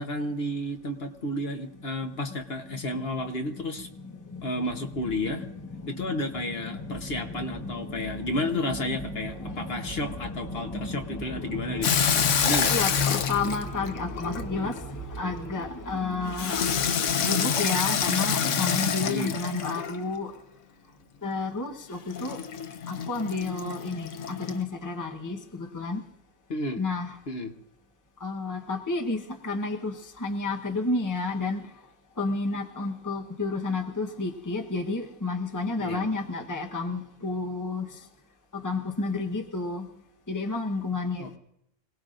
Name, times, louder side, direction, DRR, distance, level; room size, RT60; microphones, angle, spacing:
voice 1, 0.0-3.9 4.4-5.5 5.9-11.9 12.4-12.7 19.0-19.3 26.5-26.8 27.3-27.5 35.8-36.1 41.2-41.4, left 1 dB, 55° left, 1.3 m, -31 dB
voice 2, 4.0-4.6 5.0-8.4 8.7-20.3 21.2-22.4 22.9-26.0 26.8-27.2 28.2-31.6 32.2-38.0 38.5-39.9 40.3-41.4, left 3 dB, 15° left, 1.0 m, -32 dB
Water tap faucet / Sink (filling or washing), 11.8-14.8 16.4-20.1 22.1-24.6, left 7 dB, 85° left, 1.2 m, -27 dB
26.5 x 18.0 x 2.5 m
omnidirectional pair, 1.2 m